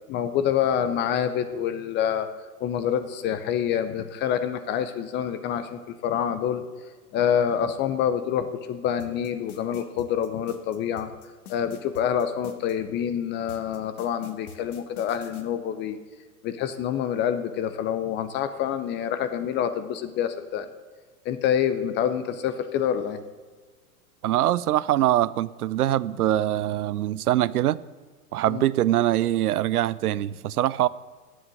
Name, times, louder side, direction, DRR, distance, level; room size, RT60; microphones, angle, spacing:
voice 1, 0.1-2.3 2.6-6.6 7.1-11.1 11.5-16.0 16.4-20.7 21.2-23.2 28.5-28.6, left 9 dB, 25° left, 11 dB, 0.6 m, -27 dB
sound 1, 9.0-12.7 13.5-15.4, left 7 dB, 65° left, 1.6 m, -45 dB
voice 2, 24.2-27.8 28.3-30.9, right 13 dB, 70° right, 19 dB, 0.6 m, -23 dB
9.9 x 7.8 x 9.4 m, 1.4 s
figure-of-eight pair, 105°, 47 cm